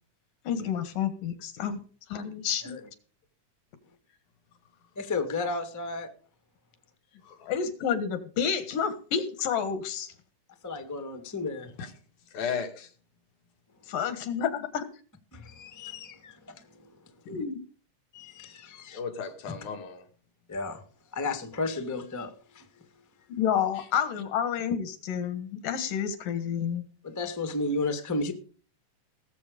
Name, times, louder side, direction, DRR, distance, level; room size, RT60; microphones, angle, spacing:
voice 1, 0.4-1.8 2.1-2.8 7.4-10.1 13.9-14.9 17.3-17.6 23.3-26.9, left 8 dB, 85° left, 3.2 m, -29 dB
voice 2, 4.9-6.1 10.6-11.8 15.3-16.9 18.1-19.0 20.5-20.8 21.1-22.7 27.0-28.3, left 3 dB, 10° left, 0.8 m, -33 dB
voice 3, 12.3-12.9 18.9-20.0, left 6 dB, 70° left, 3.2 m, -35 dB
19.5 x 7.7 x 5.2 m
omnidirectional pair, 3.7 m